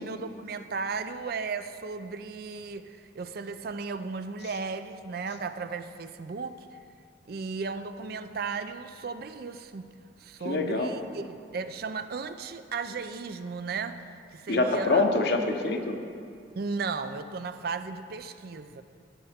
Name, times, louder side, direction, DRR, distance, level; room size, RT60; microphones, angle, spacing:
voice 1, 0.0-6.8 7.3-9.9 10.2-15.1 16.6-18.8, right 4 dB, 55° right, 10 dB, 0.4 m, -35 dB
voice 2, 10.4-10.9 14.5-16.0, left 2 dB, 60° left, 4 dB, 0.9 m, -25 dB
16.5 x 6.7 x 3.6 m, 2.3 s
head